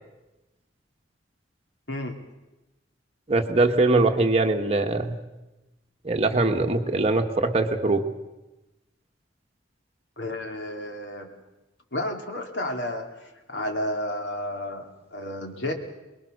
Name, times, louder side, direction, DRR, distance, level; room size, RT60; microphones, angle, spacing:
voice 1, 3.3-5.2 6.0-8.1, right 2 dB, 35° right, 4 dB, 1.6 m, -22 dB
voice 2, 10.2-11.3 11.9-15.7, left 1 dB, 75° left, 4 dB, 2.8 m, -32 dB
24.0 x 21.5 x 6.7 m, 1.0 s
head